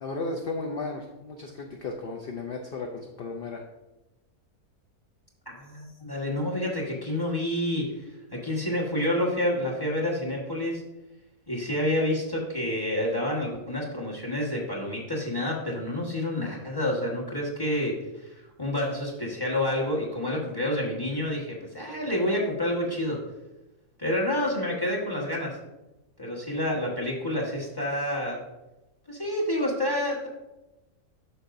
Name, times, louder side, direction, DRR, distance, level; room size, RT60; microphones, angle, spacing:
voice 1, 0.0-3.6, left 3 dB, 55° left, 2 dB, 0.7 m, -34 dB
voice 2, 5.4-7.9 8.3-10.8 11.5-23.2 24.0-25.6 26.2-28.4 29.1-30.3, left 1 dB, 15° left, -2 dB, 1.5 m, -28 dB
9.7 x 6.5 x 2.6 m, 1.0 s
omnidirectional pair, 1.6 m